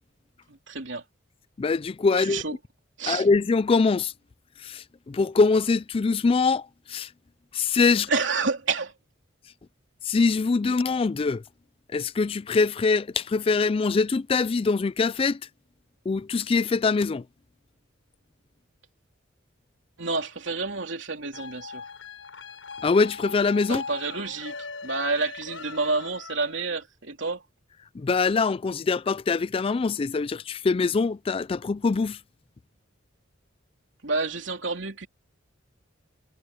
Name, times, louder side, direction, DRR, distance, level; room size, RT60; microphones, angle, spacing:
voice 1, 0.5-1.0 2.2-2.6 3.0-3.3 8.1-8.9 20.0-21.8 23.7-24.5 24.8-27.4 34.0-35.1, right 3 dB, 70° right, 3.2 m, -29 dB
voice 2, 1.6-2.4 3.1-4.1 4.6-7.1 7.5-8.1 10.0-11.4 11.9-15.4 16.1-17.2 22.8-23.8 27.9-32.2, left 4 dB, 30° left, 0.3 m, -23 dB
sound 1, 21.3-26.8, left 5 dB, 85° left, 6.4 m, -40 dB
head